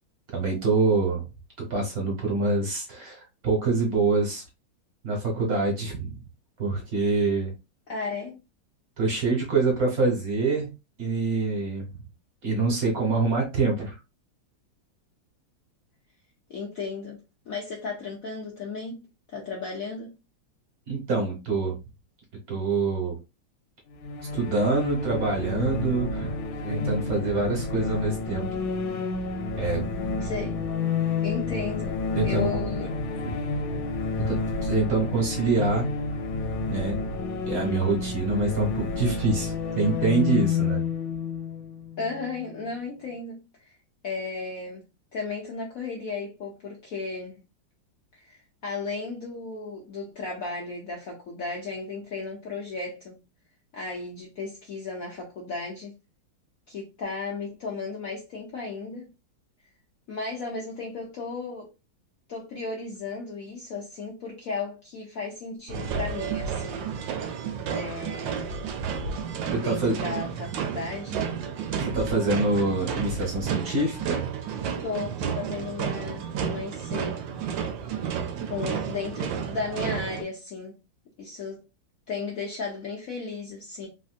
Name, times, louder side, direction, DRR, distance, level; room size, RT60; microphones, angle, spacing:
voice 1, 0.3-1.2 1.6-4.4 5.0-6.2 6.6-7.5 9.0-10.7 11.0-11.9 12.4-13.9 20.9-21.8 22.5-23.1 24.3-26.3 26.6-28.5 29.5-29.8 32.1-32.5 33.2-33.4 34.3-35.9 36.7-37.0 37.5-40.8 69.5-69.9 71.8-74.2, right 3 dB, 50° right, 1.4 m, -25 dB
voice 2, 7.9-8.4 16.5-17.2 17.5-20.1 30.2-30.6 31.2-32.9 42.0-43.7 44.0-44.8 45.1-47.4 48.1-53.2 53.7-55.9 56.7-59.1 60.1-61.7 62.3-66.9 67.7-68.7 69.5-71.3 74.8-77.2 78.4-80.8 81.2-81.7 82.1-83.9, left 4 dB, 65° left, 0.9 m, -35 dB
sound 1, 24.0-42.6, left 4 dB, 85° left, 1.5 m, -30 dB
sound 2, 65.7-80.2, right 7 dB, 75° right, 1.2 m, -31 dB
3.4 x 2.6 x 2.4 m
omnidirectional pair, 2.2 m